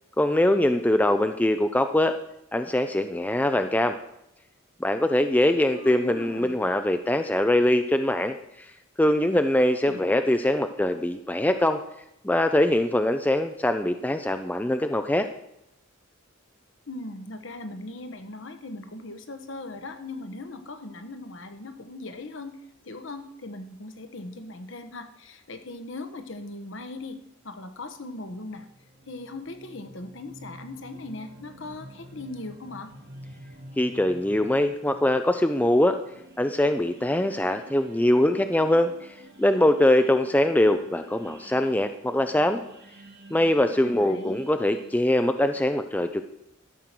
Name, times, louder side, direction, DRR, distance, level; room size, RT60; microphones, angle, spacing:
voice 1, 0.2-2.2 2.5-4.0 4.8-8.7 9.0-11.8 12.2-15.3 33.8-36.0 36.4-42.6 43.3-46.2, left 1 dB, 10° left, 8 dB, 0.4 m, -23 dB
voice 2, 5.7-6.5 9.8-10.2 16.9-22.6 22.8-27.2 27.4-28.7 29.1-32.9 43.8-44.4, left 2 dB, 60° left, 8 dB, 1.1 m, -39 dB
sound 1, 28.2-45.0, right 1 dB, 50° right, 1.9 m, -49 dB
13.0 x 6.5 x 6.0 m, 0.83 s
head